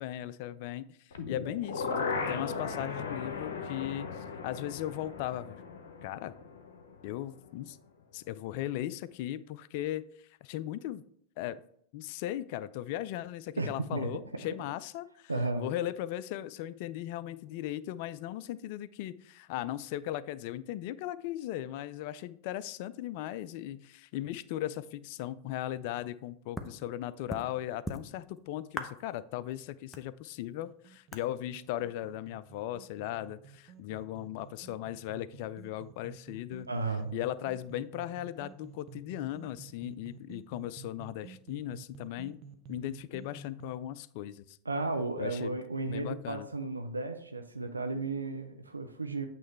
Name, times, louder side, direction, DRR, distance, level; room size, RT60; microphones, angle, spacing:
voice 1, 0.0-5.6 6.0-6.3 7.0-7.8 8.1-11.0 11.4-11.6 11.9-15.3 15.6-36.7 37.1-42.4 42.7-44.6 45.2-45.6 45.9-46.5, left 13 dB, 50° left, 17 dB, 0.3 m, -37 dB
sound 1, 1.1-7.1 7.5-7.6, left 5 dB, 65° left, 0.8 m, -37 dB
voice 2, 13.6-14.1 15.3-15.6 36.7-37.2 44.7-49.2, right 3 dB, 85° right, 7 dB, 0.5 m, -34 dB
sound 2, 26.5-26.7 27.3-27.4 27.8-28.4 28.7-29.2 29.5-29.6 29.9-30.7 31.1-31.3, left 1 dB, 10° left, 0.7 m, -39 dB
sound 3, 30.6-43.7, right 7 dB, 40° right, 0.6 m, -52 dB
8.4 x 3.1 x 4.5 m, 0.68 s
figure-of-eight pair, 90°, 0 cm